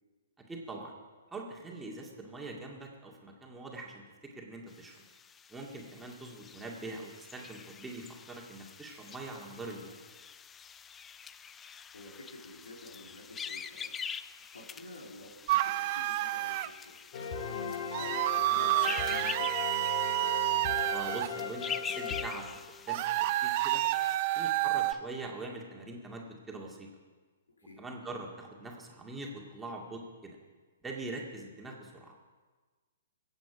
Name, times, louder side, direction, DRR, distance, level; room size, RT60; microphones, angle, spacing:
voice 1, 0.5-0.9 1.3-5.0 5.5-9.9 20.9-23.8 24.3-26.9 27.8-30.4 30.8-32.1, right 2 dB, 10° right, -1 dB, 2.1 m, -43 dB
sound 1, 4.7-24.2, left 7 dB, 15° left, 0.4 m, -45 dB
voice 2, 11.9-14.0 14.3-17.0 17.5-20.0 27.6-27.8, left 1 dB, 80° left, 1 dB, 2.9 m, -51 dB
sound 2, 15.5-16.7 17.9-21.3 22.9-24.9, right 16 dB, 40° right, 0.4 m, -29 dB
sound 3, 17.1-23.0, left 5 dB, 50° left, 1.6 m, -38 dB
22.0 x 8.3 x 4.9 m, 1.4 s
figure-of-eight pair, 120°, 0 cm